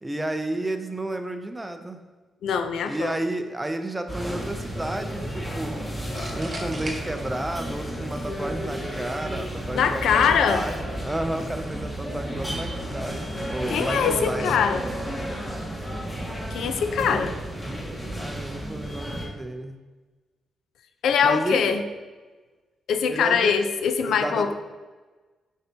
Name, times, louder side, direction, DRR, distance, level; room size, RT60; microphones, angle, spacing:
voice 1, 0.0-2.0 2.8-5.8 6.3-14.7 17.0-17.3 18.2-19.8 21.2-21.7 23.1-23.5 24.0-24.5, right 1 dB, 10° right, 7 dB, 0.5 m, -31 dB
voice 2, 2.4-3.2 9.7-10.7 13.7-14.8 16.5-17.3 21.0-21.8 22.9-24.5, left 7 dB, 90° left, 8 dB, 0.5 m, -22 dB
sound 1, 2.8-3.3 6.1-7.7, right 2 dB, 30° right, 1.1 m, -39 dB
sound 2, 4.1-19.3, equal, 10° left, 1.5 m, -32 dB
Burping eructation, 6.1-7.4 7.7-9.5 9.9-10.0 10.6-10.8 11.3-11.9, left 3 dB, 55° left, 1.0 m, -43 dB
7.7 x 5.4 x 2.8 m, 1.3 s
wide cardioid pair, 135°, 0 cm